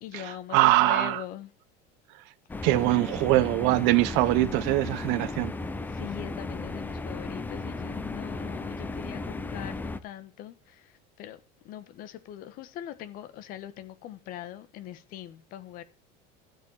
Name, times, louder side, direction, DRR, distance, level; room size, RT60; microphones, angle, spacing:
voice 1, 0.0-1.5 5.2-5.3 5.9-15.8, left 12 dB, 45° left, 1.3 m, -41 dB
voice 2, 0.5-1.2 2.6-5.5, right 17 dB, 60° right, 0.9 m, -23 dB
sound 1, 2.5-10.0, left 3 dB, 10° left, 0.7 m, -35 dB
12.5 x 7.9 x 7.2 m
cardioid pair, 165°, 20 cm